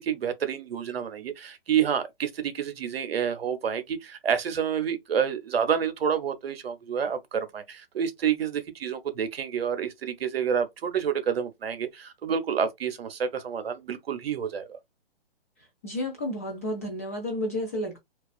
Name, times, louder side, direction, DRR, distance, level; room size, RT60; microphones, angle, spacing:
voice 1, 0.0-14.8, right 7 dB, 75° right, 0.7 m, -29 dB
voice 2, 15.8-18.0, left 1 dB, 15° left, 0.3 m, -31 dB
2.3 x 2.3 x 2.3 m
hypercardioid pair, 140°, 30 cm